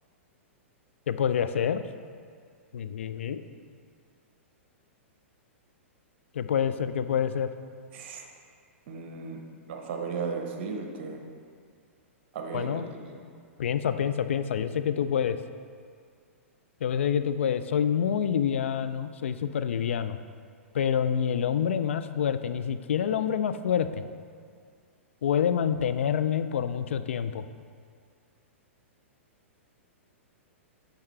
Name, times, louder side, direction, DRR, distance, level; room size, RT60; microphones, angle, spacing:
voice 1, 1.1-1.8 2.7-3.4 6.3-7.5 12.5-12.9 13.6-15.4 16.8-20.2 20.7-24.0 25.2-27.4, left 8 dB, 65° left, 11 dB, 0.3 m, -27 dB
voice 2, 7.9-8.3 8.9-9.4 9.7-11.2 12.3-13.2, right 5 dB, 50° right, 3 dB, 1.0 m, -35 dB
8.6 x 5.7 x 3.3 m, 2.1 s
figure-of-eight pair, 105°, 7 cm